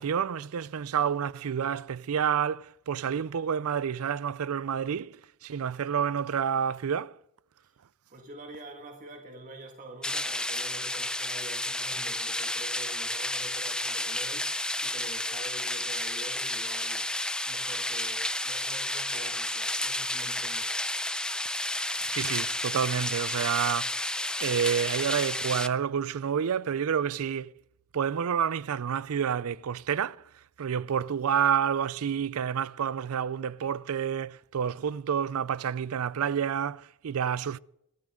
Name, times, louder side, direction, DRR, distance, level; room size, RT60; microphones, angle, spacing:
voice 1, 0.0-7.2 22.1-24.0 24.4-27.5 27.9-30.3 30.6-37.6, right 8 dB, 85° right, 0.4 m, -29 dB
voice 2, 8.1-14.4 14.8-17.1 17.4-20.8, right 2 dB, 40° right, 1.9 m, -46 dB
sound 1, 10.0-25.7, left 1 dB, 5° left, 0.5 m, -31 dB
22.0 x 14.0 x 3.7 m
head